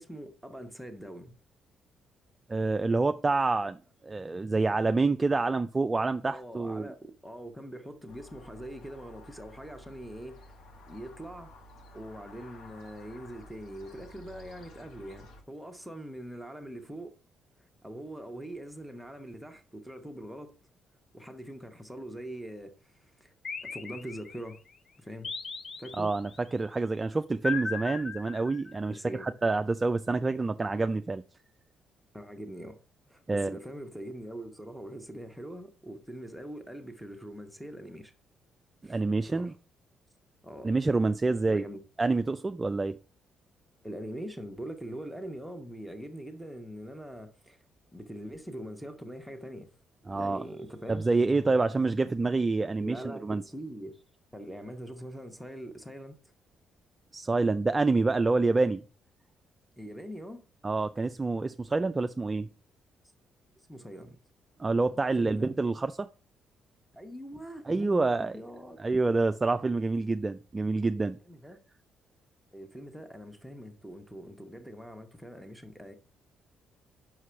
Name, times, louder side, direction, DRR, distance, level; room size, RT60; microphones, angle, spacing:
voice 1, 0.0-1.3 6.3-10.5 10.9-11.5 11.9-17.1 17.8-20.5 21.1-23.3 23.6-24.6 25.0-25.3 25.8-26.1 28.9-29.3 32.1-32.8 33.1-38.1 38.8-39.0 39.2-39.5 40.4-40.7 41.5-41.8 43.8-47.6 47.9-49.7 50.1-51.0 52.8-54.0 54.3-56.2 59.8-60.4 63.7-64.2 65.2-65.6 66.9-68.8 69.8-69.9 71.0-71.6 72.5-75.9, equal, ahead, 0.9 m, -43 dB
voice 2, 2.5-3.8 4.0-6.9 26.0-31.2 33.3-33.6 38.8-39.5 40.6-41.6 42.0-43.0 50.1-50.5 50.9-53.4 57.1-58.8 60.6-62.5 64.6-66.1 67.7-68.4 68.8-71.2, right 3 dB, 20° right, 0.3 m, -27 dB
sound 1, 8.1-15.4, left 1 dB, 75° left, 1.3 m, -52 dB
sound 2, 23.4-24.6 25.2-26.4 27.4-28.9, left 4 dB, 45° left, 0.7 m, -37 dB
5.9 x 4.8 x 5.6 m
cardioid pair, 115°, 0 cm